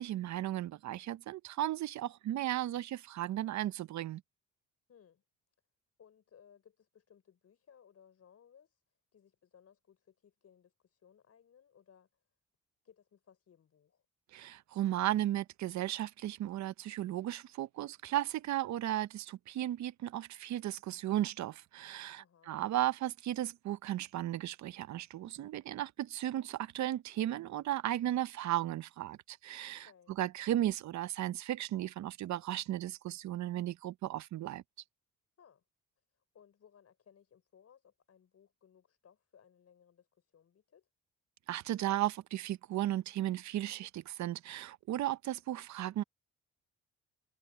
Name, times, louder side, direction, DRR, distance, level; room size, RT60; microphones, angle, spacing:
voice 1, 0.0-4.2 14.3-29.9 30.2-34.6 41.5-46.0, right 13 dB, 65° right, 0.7 m, -35 dB
voice 2, 4.9-5.2 6.0-8.8 9.1-12.2 12.8-14.1 22.2-22.6 29.8-30.2 35.4-35.6 36.1-40.9, left 8 dB, 55° left, 5.6 m, -63 dB
cardioid pair, 90°, 30 cm